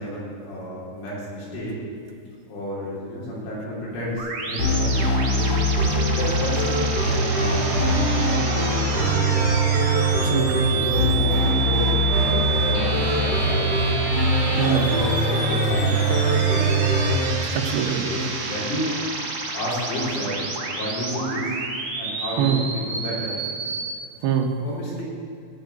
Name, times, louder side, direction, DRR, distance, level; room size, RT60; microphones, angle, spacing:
voice 1, 0.0-1.8 2.5-5.5 6.1-9.4 10.7-11.8 12.2-13.7 14.4-16.8 18.0-19.0 19.5-21.5 22.0-23.4 24.6-25.0, equal, 75° left, -6 dB, 5.7 m, -31 dB
sound 1, 4.2-23.9, right 4 dB, 60° right, 1.7 m, -30 dB
sound 2, 4.6-17.3, right 1 dB, 50° left, 3.0 m, -22 dB
sound 3, 7.3-17.2, right 2 dB, 15° right, 1.3 m, -33 dB
voice 2, 10.1-10.7 14.6-14.9 17.5-18.1 22.4-22.6 24.2-24.5, right 9 dB, 85° right, 2 dB, 2.1 m, -23 dB
14.5 x 5.3 x 9.4 m, 2.4 s
omnidirectional pair, 5.7 m